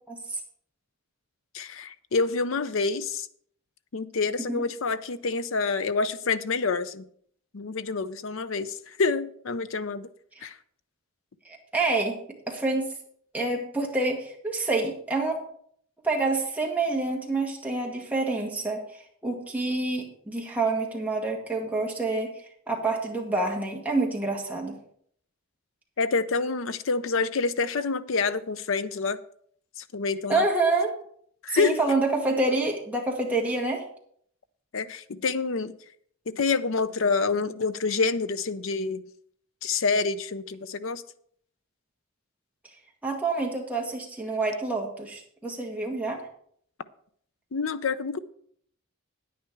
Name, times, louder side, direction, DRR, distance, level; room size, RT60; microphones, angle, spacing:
voice 1, 0.1-0.4 4.4-4.6 10.4-10.5 11.4-12.2 12.5-12.9 13.3-15.4 16.0-22.3 22.7-24.8 30.3-30.9 31.5-33.8 43.0-46.2, right 3 dB, 5° right, -2 dB, 1.9 m, -27 dB
voice 2, 1.5-3.3 3.9-7.1 7.5-10.1 10.4-10.6 26.0-29.2 29.8-30.4 31.4-31.8 34.7-35.7 36.3-39.0 39.6-41.0 47.5-48.2, left 4 dB, 65° left, 13 dB, 0.6 m, -27 dB
9.5 x 9.4 x 4.7 m, 0.64 s
head